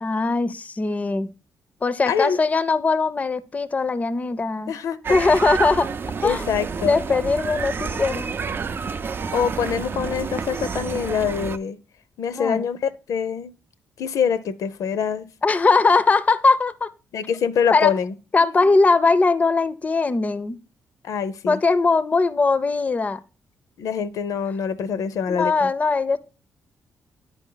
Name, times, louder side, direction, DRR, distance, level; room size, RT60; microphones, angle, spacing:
voice 1, 0.0-1.3 1.8-4.7 5.1-5.9 6.2-6.5 6.8-8.3 12.3-12.6 15.4-16.9 17.7-17.9 18.3-20.6 21.5-23.2 25.3-26.2, left 3 dB, 25° left, 0.5 m, -20 dB
voice 2, 2.1-2.4 4.7-5.2 6.2-7.0 9.3-11.8 12.2-13.5 14.0-15.3 17.1-18.1 18.4-18.7 21.0-21.6 23.8-25.7, left 7 dB, 80° left, 0.6 m, -25 dB
sound 1, 5.0-11.6, right 5 dB, 40° right, 0.4 m, -29 dB
9.8 x 4.8 x 3.8 m
cardioid pair, 105°, 6 cm